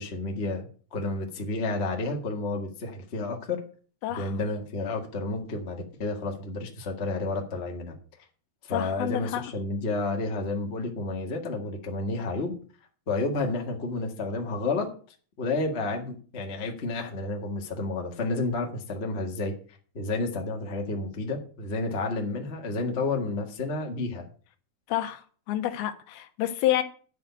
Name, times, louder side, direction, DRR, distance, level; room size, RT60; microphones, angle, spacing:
voice 1, 0.0-3.6 4.2-8.0 8.6-12.5 13.1-14.9 15.4-19.5 19.9-24.2, left 3 dB, 45° left, 0.8 m, -30 dB
voice 2, 8.7-9.4 24.9-26.8, left 13 dB, 80° left, 2.8 m, -29 dB
10.5 x 5.1 x 8.2 m
omnidirectional pair, 4.4 m